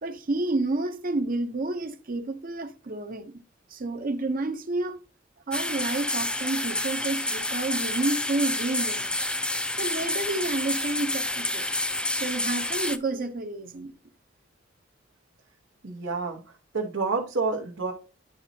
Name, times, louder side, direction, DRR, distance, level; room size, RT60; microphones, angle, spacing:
voice 1, 0.0-3.4 3.7-5.0 5.5-9.1 9.5-11.7 12.1-13.9, right 2 dB, 45° right, 0.7 m, -30 dB
sound 1, 5.5-13.0, left 1 dB, 5° left, 0.4 m, -29 dB
voice 2, 15.8-16.4 16.7-17.9, right 4 dB, 85° right, 1.1 m, -28 dB
10.5 x 4.1 x 2.7 m
head